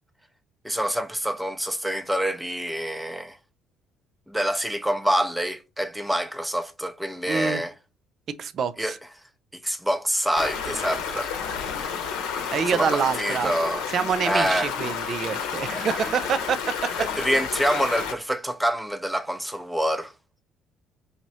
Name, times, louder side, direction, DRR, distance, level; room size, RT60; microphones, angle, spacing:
voice 1, 0.6-3.4 4.3-7.7 8.8-9.0 9.6-11.3 12.7-13.8 14.2-14.7 15.7-15.8 17.0-20.1, equal, 5° right, 0.7 m, -26 dB
voice 2, 7.3-7.6 8.4-9.0 12.5-13.5 13.9-17.1, right 6 dB, 50° right, 0.5 m, -26 dB
Stream, 10.4-18.1, left 6 dB, 70° left, 0.8 m, -31 dB
4.9 x 2.9 x 2.8 m
hypercardioid pair, 50°, 0 cm